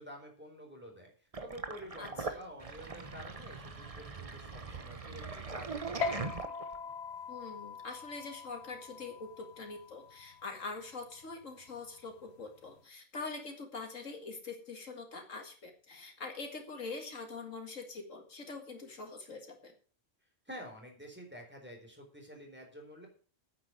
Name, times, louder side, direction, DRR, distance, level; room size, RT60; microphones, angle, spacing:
voice 1, 0.0-6.4 20.5-23.1, equal, 10° right, 1 dB, 4.2 m, -49 dB
Sink (filling or washing), 1.3-6.9, right 4 dB, 30° right, 1.1 m, -41 dB
voice 2, 2.0-2.4 7.3-19.7, left 3 dB, 85° left, 4 dB, 2.5 m, -44 dB
sound 1, 6.0-12.8, left 5 dB, 60° left, 1.1 m, -43 dB
9.5 x 8.7 x 8.0 m, 0.41 s
omnidirectional pair, 1.3 m